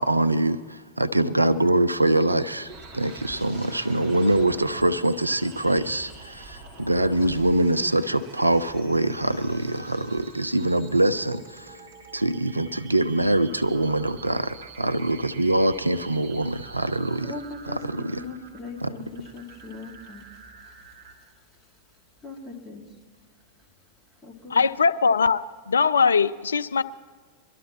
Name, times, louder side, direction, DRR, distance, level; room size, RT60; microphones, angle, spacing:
voice 1, 0.0-11.8 12.1-17.3 17.7-18.2 18.8-18.9, right 1 dB, 85° right, 13 dB, 0.4 m, -24 dB
sound 1, 2.0-21.1, right 5 dB, 55° right, 2.4 m, -48 dB
sound 2, 2.7-11.2 11.5-11.8, right 1 dB, 5° right, 3.7 m, -45 dB
voice 2, 17.2-20.2 22.2-22.8 24.2-24.6, left 3 dB, 10° left, -3 dB, 2.7 m, -39 dB
voice 3, 24.5-26.8, left 5 dB, 70° left, 14 dB, 0.3 m, -21 dB
22.5 x 12.5 x 3.0 m, 1.5 s
figure-of-eight pair, 90°, 0 cm